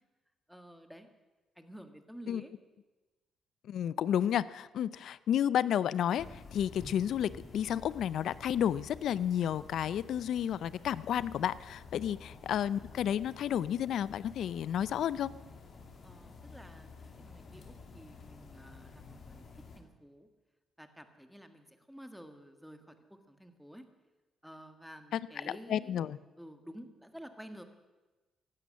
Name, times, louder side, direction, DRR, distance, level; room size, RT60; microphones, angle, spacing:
voice 1, 0.5-1.1 1.6-2.5 11.9-12.1 16.0-16.9 17.2-19.4 19.8-20.3 20.8-22.9 23.3-23.9 24.4-27.6, equal, ahead, 7 dB, 1.8 m, -51 dB
voice 2, 3.7-15.3 25.1-26.2, left 10 dB, 70° left, 18 dB, 0.6 m, -31 dB
sound 1, 6.2-19.8, left 4 dB, 50° left, 2.6 m, -51 dB
15.5 x 11.5 x 7.6 m, 1.2 s
cardioid pair, 90°, 0 cm